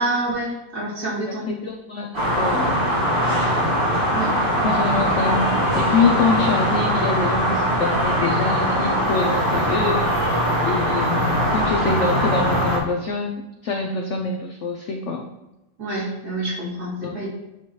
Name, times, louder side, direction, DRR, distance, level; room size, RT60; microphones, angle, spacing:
voice 1, 0.0-1.5 4.1-4.3 6.0-6.1 15.8-17.3, right 2 dB, 60° right, -7 dB, 2.9 m, -27 dB
voice 2, 1.3-2.9 4.6-10.1 10.6-15.3 17.0-17.2, left 4 dB, 80° left, 3 dB, 0.6 m, -25 dB
sound 1, 2.1-12.8, equal, 30° right, 1.8 m, -21 dB
9.0 x 4.2 x 3.1 m, 0.97 s
omnidirectional pair, 1.9 m